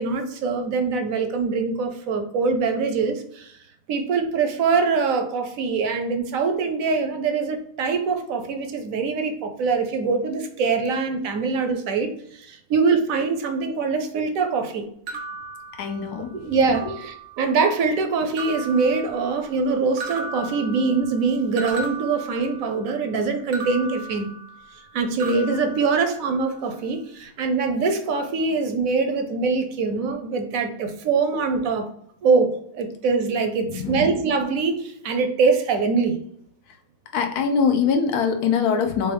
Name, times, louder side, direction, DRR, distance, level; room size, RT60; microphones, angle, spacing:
voice 1, 0.0-3.6 3.9-14.8 16.4-24.3 24.9-31.9 32.2-36.2, right 4 dB, 70° right, 6 dB, 0.9 m, -23 dB
sound 1, 15.1-16.3 16.7-17.5 18.4-19.6 20.0-22.9 23.5-24.9 25.2-26.5, right 3 dB, 90° right, 1.3 m, -37 dB
voice 2, 15.8-16.5 16.8-16.9 33.7-34.0 37.1-39.1, left 6 dB, 85° left, 5 dB, 1.2 m, -23 dB
3.9 x 3.5 x 3.3 m, 0.70 s
omnidirectional pair, 1.6 m